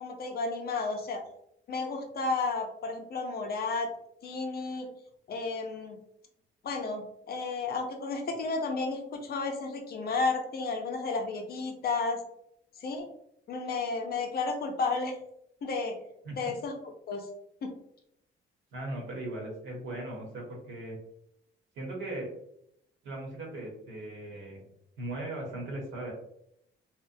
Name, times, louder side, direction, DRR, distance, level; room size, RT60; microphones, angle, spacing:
voice 1, 0.0-1.2 1.7-3.9 4.2-4.9 5.3-6.0 6.6-12.2 12.8-13.1 13.5-15.2 15.6-16.0 16.3-17.3 17.6-17.7, left 3 dB, 55° left, 4 dB, 0.6 m, -32 dB
voice 2, 18.7-21.0 21.7-22.3 23.0-24.6 25.0-26.1, right 1 dB, 80° right, -1 dB, 1.0 m, -38 dB
2.9 x 2.1 x 2.5 m, 0.75 s
cardioid pair, 105°, 20 cm